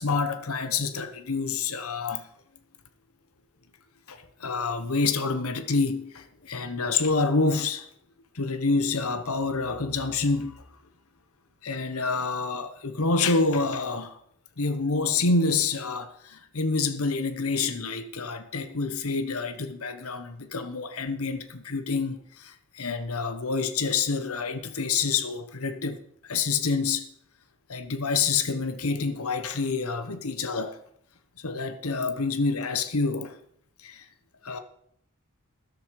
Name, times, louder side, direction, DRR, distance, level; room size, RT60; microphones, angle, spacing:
voice 1, 0.0-2.3 4.1-7.9 8.3-10.6 11.6-14.2 14.6-26.0 26.2-27.1 27.7-30.8 31.4-33.3 33.8-34.1 34.4-34.6, left 4 dB, 85° left, 1.2 m, -27 dB
13.0 x 11.0 x 4.9 m
head